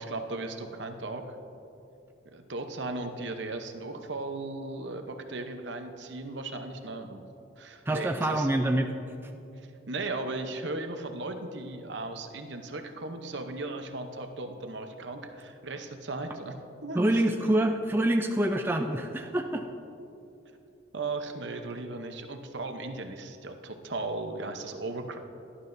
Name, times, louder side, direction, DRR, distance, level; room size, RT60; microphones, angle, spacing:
voice 1, 0.0-1.4 2.3-7.3 7.6-8.5 9.9-17.5 20.9-25.2, right 2 dB, 65° right, 6 dB, 0.8 m, -37 dB
voice 2, 7.9-8.9 16.9-19.7, right 1 dB, 10° right, 3 dB, 0.4 m, -26 dB
17.0 x 11.5 x 2.6 m, 2.8 s
head